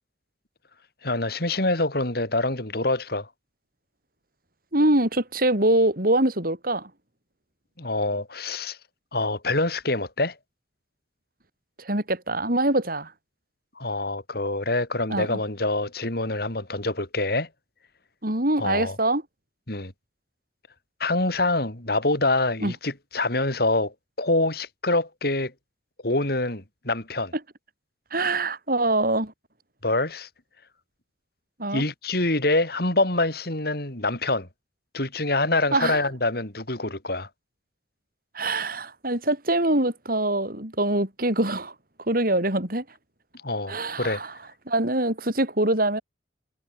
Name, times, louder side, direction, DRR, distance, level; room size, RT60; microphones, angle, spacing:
voice 1, 1.0-3.3 7.8-8.8 9.1-10.4 13.8-17.5 18.6-19.0 19.7-19.9 21.0-25.5 26.0-27.3 29.8-30.3 31.7-34.5 34.9-37.3 43.4-44.2, left 2 dB, 60° left, 5.1 m, -25 dB
voice 2, 4.7-6.9 11.8-13.1 15.1-15.4 18.2-19.2 22.6-22.7 28.1-29.3 31.6-31.8 35.7-36.0 38.3-41.7 42.1-42.8 43.7-44.3 44.7-46.0, right 1 dB, 55° right, 6.3 m, -24 dB
head